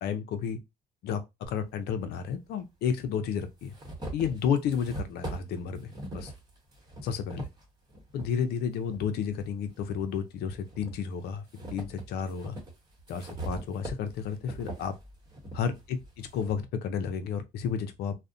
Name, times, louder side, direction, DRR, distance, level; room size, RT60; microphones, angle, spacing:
voice 1, 0.0-0.6 1.0-3.7 4.1-6.3 7.0-7.5 8.1-11.4 11.7-12.6 13.1-14.9 15.5-18.1, left 7 dB, 70° left, 0.5 m, -32 dB
sound 1, 1.4-1.5 2.6-2.7 3.2-8.3 8.9-10.0 10.5-16.6, right 2 dB, 25° right, 1.0 m, -42 dB
2.5 x 2.0 x 2.4 m
cardioid pair, 110°, 17 cm